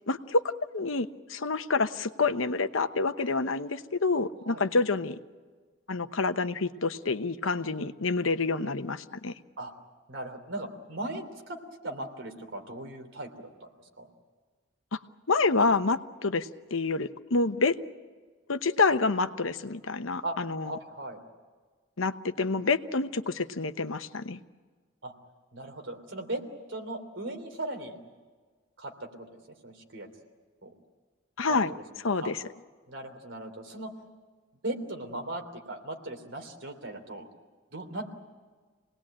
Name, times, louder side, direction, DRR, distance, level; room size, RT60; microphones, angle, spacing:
voice 1, 0.1-5.2 5.9-9.3 15.3-17.8 18.5-20.7 22.0-24.4 31.4-31.7 32.0-32.4, left 3 dB, 80° left, 10 dB, 1.0 m, -28 dB
voice 2, 10.1-11.6 11.8-14.1 18.9-19.0 20.2-20.3 20.6-21.2 25.0-25.1 25.5-26.4 26.7-27.9 28.8-30.1 30.6-30.7 31.5-31.8 32.2-32.3 32.9-33.9 34.6-37.3 37.7-38.1, right 1 dB, 65° right, 4 dB, 3.2 m, -38 dB
26.5 x 19.5 x 8.8 m, 1.5 s
head